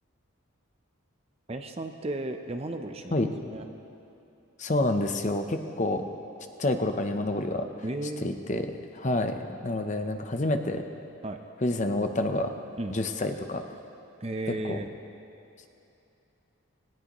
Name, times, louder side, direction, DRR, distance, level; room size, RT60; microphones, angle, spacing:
voice 1, 1.5-3.7 7.8-8.4 11.2-11.4 12.8-12.9 14.2-14.9, right 2 dB, 30° right, 6 dB, 0.6 m, -34 dB
voice 2, 4.6-6.0 6.6-7.7 8.2-10.9 11.6-12.5 12.9-13.7 14.5-14.8, left 2 dB, 35° left, 6 dB, 0.7 m, -28 dB
18.5 x 18.0 x 3.0 m, 2.8 s
head